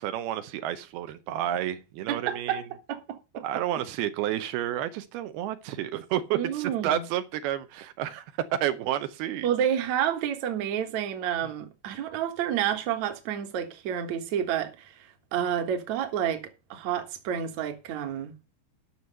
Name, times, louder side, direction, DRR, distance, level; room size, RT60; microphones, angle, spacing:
voice 1, 0.0-2.6 3.4-9.5, right 11 dB, 85° right, 2.8 m, -30 dB
voice 2, 2.1-2.6 2.9-3.4 6.3-7.0 9.4-18.3, right 9 dB, 60° right, 2.3 m, -29 dB
10.5 x 6.3 x 6.7 m
omnidirectional pair, 4.5 m